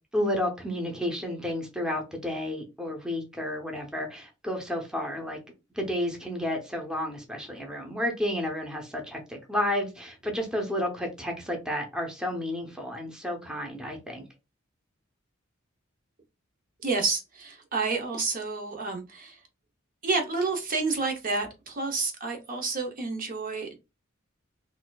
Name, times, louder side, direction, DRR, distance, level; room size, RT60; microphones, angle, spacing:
voice 1, 0.1-5.4 5.7-14.2, left 1 dB, 5° right, 0.7 m, -31 dB
voice 2, 16.8-19.4 20.0-23.8, right 3 dB, 45° right, 0.7 m, -29 dB
4.1 x 2.5 x 2.2 m
head